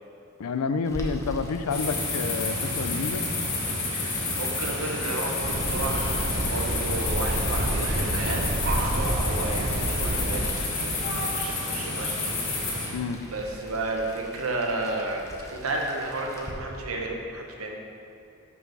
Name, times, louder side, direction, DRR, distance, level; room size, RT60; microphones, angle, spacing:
voice 1, 0.4-3.3 12.9-13.2, left 5 dB, 85° left, 10 dB, 0.4 m, -29 dB
Boiling, 0.8-16.5, equal, 15° left, 0.7 m, -44 dB
sound 1, 1.7-12.9, left 2 dB, 55° left, 1.9 m, -29 dB
voice 2, 3.9-12.3 12.7-12.9 13.2-17.7, right 2 dB, 75° right, 1 dB, 1.1 m, -33 dB
sound 2, 5.4-10.5, right 1 dB, 45° right, 0.7 m, -29 dB
5.9 x 5.9 x 5.9 m, 2.6 s
head